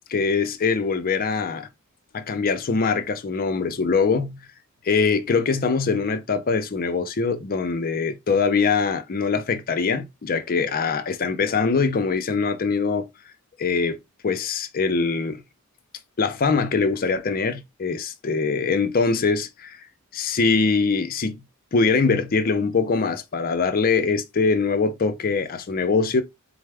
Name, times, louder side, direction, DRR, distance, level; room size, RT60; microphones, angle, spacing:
voice 1, 0.1-1.7 2.1-4.4 4.8-13.1 13.6-14.0 14.2-15.4 16.2-19.8 20.1-21.4 21.7-26.2, left 4 dB, 40° left, 0.5 m, -23 dB
4.5 x 2.0 x 3.3 m
head